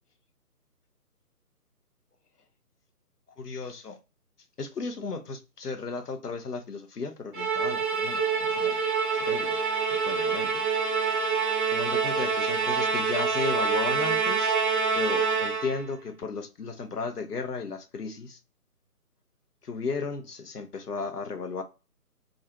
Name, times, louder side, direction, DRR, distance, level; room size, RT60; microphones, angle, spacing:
voice 1, 3.4-4.0 4.6-8.8 9.2-9.6 9.9-10.6 11.7-14.6 14.9-18.4 19.6-21.6, left 4 dB, 75° left, 0.7 m, -35 dB
Musical instrument, 7.3-15.9, right 5 dB, 35° right, 0.7 m, -26 dB
2.5 x 2.3 x 2.9 m
figure-of-eight pair, 145°, 47 cm